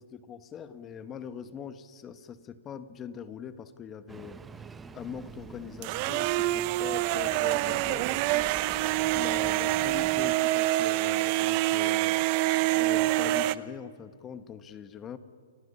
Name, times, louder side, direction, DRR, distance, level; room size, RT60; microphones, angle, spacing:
voice 1, 0.0-4.7 4.9-8.6 9.1-12.2 12.7-15.2, left 7 dB, 20° left, 11 dB, 1.3 m, -42 dB
Engine starting, 4.1-10.3, right 5 dB, 10° right, 0.9 m, -46 dB
sound 1, 5.8-13.5, right 17 dB, 40° right, 0.7 m, -26 dB
30.0 x 23.5 x 5.6 m, 2.1 s
hypercardioid pair, 140°, 0 cm